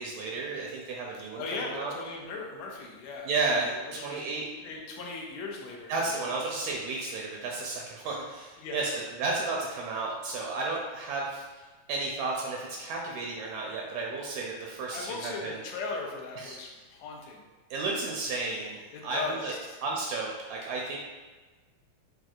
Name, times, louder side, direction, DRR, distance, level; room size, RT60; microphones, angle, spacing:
voice 1, 0.0-1.9 3.2-4.5 5.9-8.9 9.2-15.5 16.4-16.6 17.7-19.5 19.8-21.0, right 3 dB, 80° right, -2 dB, 1.8 m, -33 dB
voice 2, 1.4-4.2 4.6-6.4 8.6-9.0 14.9-17.5 18.9-19.8, left 3 dB, 80° left, -1 dB, 1.8 m, -38 dB
5.8 x 2.7 x 2.4 m, 1.3 s
omnidirectional pair, 3.4 m